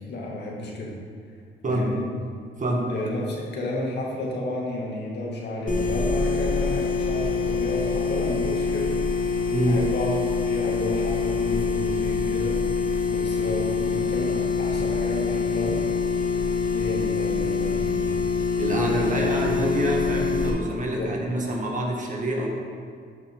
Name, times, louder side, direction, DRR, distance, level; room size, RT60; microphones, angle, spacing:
voice 1, 0.1-1.0 1.6-2.1 2.9-8.9 9.7-10.2 10.5-12.8 13.1-15.8 16.7-18.0 18.8-19.1 20.7-21.1, left 1 dB, 60° left, -3 dB, 2.1 m, -31 dB
voice 2, 2.6-2.9 9.5-9.8 18.6-22.5, right 1 dB, 40° right, -1 dB, 1.8 m, -26 dB
sound 1, 5.7-20.5, left 4 dB, 45° left, 1.7 m, -25 dB
12.5 x 5.7 x 3.7 m, 2.1 s
cardioid pair, 90°, 20 cm